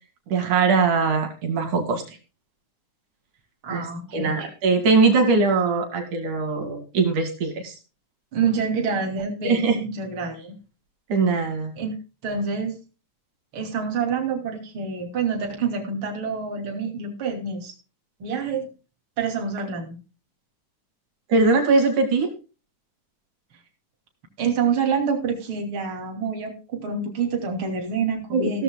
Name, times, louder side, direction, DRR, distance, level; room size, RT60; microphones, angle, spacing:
voice 1, 0.3-2.2 3.7-3.9 4.1-7.8 9.4-9.8 11.1-11.7 21.3-22.3 28.3-28.6, right 4 dB, 75° right, 4 dB, 3.6 m, -21 dB
voice 2, 3.6-4.4 8.3-10.6 11.8-12.0 12.2-12.8 13.5-17.7 18.2-18.7 19.2-20.0 24.4-28.6, right 5 dB, 40° right, 3 dB, 3.5 m, -27 dB
16.5 x 13.5 x 2.2 m, 0.32 s
omnidirectional pair, 3.6 m